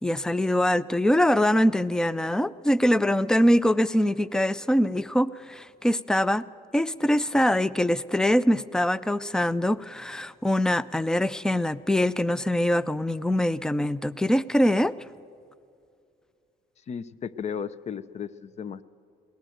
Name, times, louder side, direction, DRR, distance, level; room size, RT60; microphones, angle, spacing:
voice 1, 0.0-6.5 6.7-14.9, left 1 dB, 5° left, 0.4 m, -23 dB
voice 2, 16.9-18.8, left 7 dB, 40° left, 0.7 m, -35 dB
22.0 x 17.5 x 7.9 m
cardioid pair, 110°, 17 cm